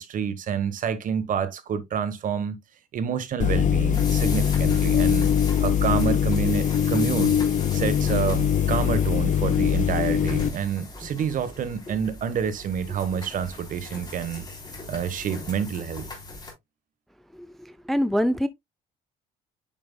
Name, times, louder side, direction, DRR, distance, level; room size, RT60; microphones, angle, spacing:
voice 1, 0.0-2.6 2.9-5.3 5.6-7.3 7.7-14.4 14.9-16.1, right 7 dB, 50° right, 1.2 m, -28 dB
sound 1, 3.4-10.5, left 8 dB, 50° left, 0.7 m, -22 dB
sound 2, 3.9-16.5, left 2 dB, 25° left, 3.2 m, -39 dB
voice 2, 17.3-18.5, equal, ahead, 0.4 m, -25 dB
8.8 x 5.2 x 2.2 m
cardioid pair, 110°, 17 cm